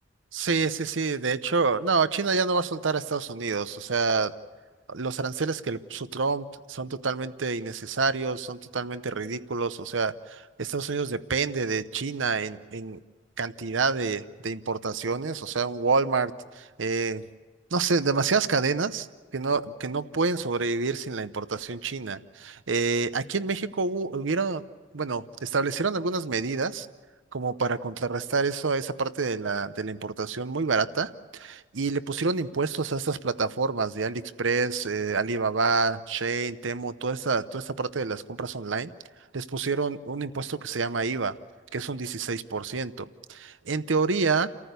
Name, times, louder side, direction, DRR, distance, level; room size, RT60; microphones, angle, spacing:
voice 1, 0.3-4.3 4.9-13.0 13.4-17.2 17.7-19.1 19.3-24.6 24.9-26.9 27.3-38.9 39.3-41.4 41.7-44.5, right 4 dB, 85° right, 14 dB, 0.8 m, -28 dB
29.5 x 14.5 x 8.2 m, 1.4 s
head